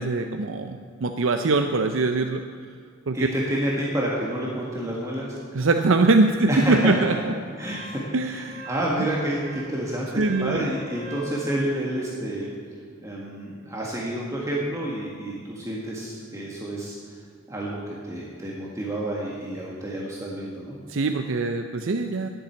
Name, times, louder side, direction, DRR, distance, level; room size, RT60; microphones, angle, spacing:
voice 1, 0.0-2.4 3.1-3.3 5.5-7.1 8.1-8.6 9.0-9.1 10.1-10.7 20.9-22.3, right 3 dB, 60° right, 6 dB, 0.6 m, -22 dB
voice 2, 3.1-5.3 6.5-6.9 7.6-12.5 13.0-16.9 17.5-20.8, right 1 dB, 15° right, -4 dB, 1.6 m, -29 dB
Wind instrument woodwind instrument, 6.8-11.4, right 2 dB, 35° right, 1.4 m, -42 dB
11.5 x 7.5 x 8.7 m, 2.1 s
head